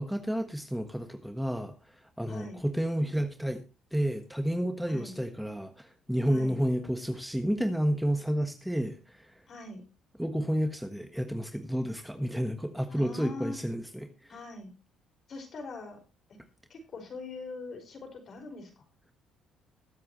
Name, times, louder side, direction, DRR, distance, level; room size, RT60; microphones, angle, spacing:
voice 1, 0.0-1.7 2.2-3.6 3.9-9.3 10.2-14.3, equal, ahead, 1.3 m, -30 dB
voice 2, 2.3-2.6 4.9-5.1 6.3-6.6 9.5-9.8 12.9-13.6 14.3-14.7 15.3-16.0 16.3-16.4 16.7-18.8, left 3 dB, 50° left, 5.2 m, -42 dB
21.5 x 7.8 x 3.1 m
cardioid pair, 105°, 0 cm